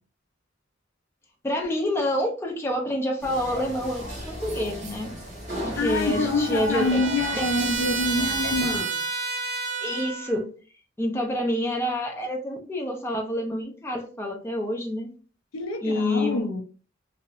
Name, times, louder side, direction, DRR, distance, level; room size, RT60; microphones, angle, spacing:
voice 1, 1.4-5.1 5.6-7.0 7.3-7.5 9.8-10.5 11.0-15.1 15.8-16.5, left 1 dB, 10° left, 0.5 m, -27 dB
sound 1, 3.2-8.8, equal, 35° right, 1.3 m, -36 dB
Trumpet, 5.7-10.4, right 4 dB, 60° right, 0.6 m, -31 dB
voice 2, 5.8-9.0 15.5-16.6, left 2 dB, 80° left, 0.4 m, -26 dB
2.7 x 2.0 x 2.3 m
head